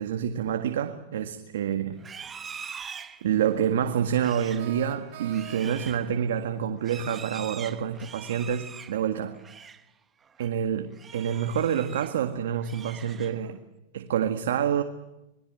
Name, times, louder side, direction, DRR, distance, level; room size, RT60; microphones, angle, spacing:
voice 1, 0.0-2.0 3.2-9.4 10.4-13.6 13.9-14.8, right 9 dB, 80° right, 1.8 m, -27 dB
Livestock farm animals working animals, 1.9-9.9 10.2-10.5 10.9-12.2 12.5-13.6, right 6 dB, 20° right, 1.2 m, -44 dB
sound 1, 4.6-6.0, right 10 dB, 60° right, 3.3 m, -44 dB
26.5 x 21.5 x 9.1 m
supercardioid pair, 145°, 0 cm